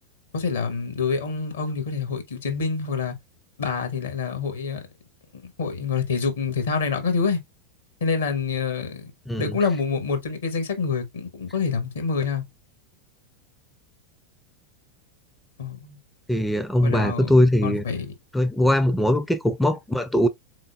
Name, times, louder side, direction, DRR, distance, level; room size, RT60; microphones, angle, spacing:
voice 1, 0.3-3.2 3.6-4.9 5.3-7.4 8.0-12.4 15.6-16.0 16.8-17.3 17.6-18.0, left 5 dB, 70° left, 1.2 m, -27 dB
voice 2, 9.3-9.6 16.3-17.8 18.3-20.3, left 1 dB, 5° left, 0.4 m, -21 dB
3.9 x 3.6 x 2.4 m
figure-of-eight pair, 85°, 0 cm